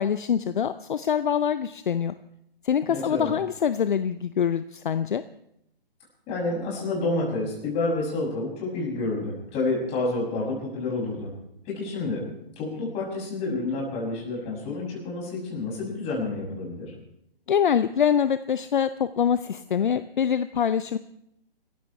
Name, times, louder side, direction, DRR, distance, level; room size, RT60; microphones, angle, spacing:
voice 1, 0.0-2.1 2.6-5.2 17.5-21.0, left 8 dB, 55° left, 13 dB, 0.7 m, -24 dB
voice 2, 2.9-3.3 6.3-11.3 11.6-12.2 12.6-16.9, left 2 dB, 20° left, -3 dB, 7.0 m, -29 dB
28.0 x 14.5 x 3.4 m, 0.79 s
figure-of-eight pair, 135°, 29 cm